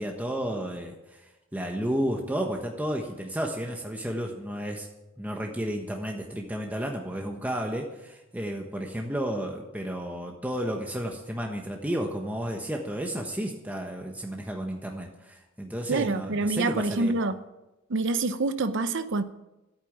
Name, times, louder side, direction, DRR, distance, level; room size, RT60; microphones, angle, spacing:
voice 1, 0.0-4.9 5.2-17.1, equal, 10° right, 1.2 m, -32 dB
voice 2, 15.9-17.4 17.9-19.2, right 3 dB, 65° right, 0.7 m, -26 dB
13.0 x 8.9 x 8.8 m
head